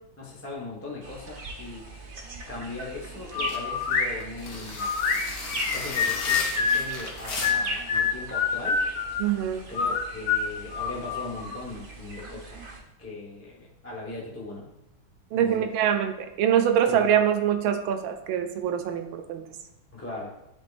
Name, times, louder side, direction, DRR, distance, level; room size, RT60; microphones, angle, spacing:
voice 1, 0.2-1.9 2.5-4.9 5.7-8.8 9.7-14.7 15.3-15.7 16.9-17.1 19.9-20.3, left 2 dB, 10° left, -3 dB, 0.7 m, -39 dB
sound 1, 1.0-12.8, right 2 dB, 55° right, 0.6 m, -40 dB
sound 2, 3.3-4.1 4.8-6.9 7.4-9.2 9.7-11.6, left 6 dB, 75° left, 1.6 m, -26 dB
sound 3, 3.3-7.8, left 3 dB, 60° left, 1.6 m, -35 dB
voice 2, 9.2-9.6 15.3-19.4, right 9 dB, 80° right, 6 dB, 1.4 m, -24 dB
10.5 x 4.5 x 2.5 m, 0.87 s
omnidirectional pair, 2.2 m